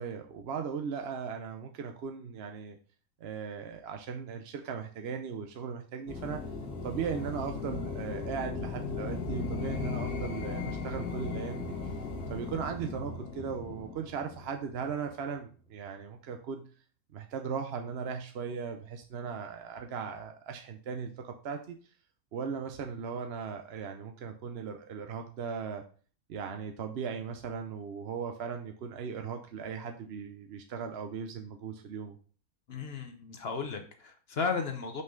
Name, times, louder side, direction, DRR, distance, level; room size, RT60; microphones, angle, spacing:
voice 1, 0.0-2.8 3.2-6.4 6.8-11.7 12.3-16.7 17.1-21.8 22.3-25.8 26.3-32.2, right 6 dB, 55° right, 5 dB, 0.7 m, -38 dB
sound 1, 6.1-15.1, left 4 dB, 80° left, 1.9 m, -37 dB
voice 2, 32.7-35.0, left 5 dB, 50° left, 6 dB, 0.9 m, -34 dB
5.6 x 5.6 x 3.8 m, 0.40 s
omnidirectional pair, 1.6 m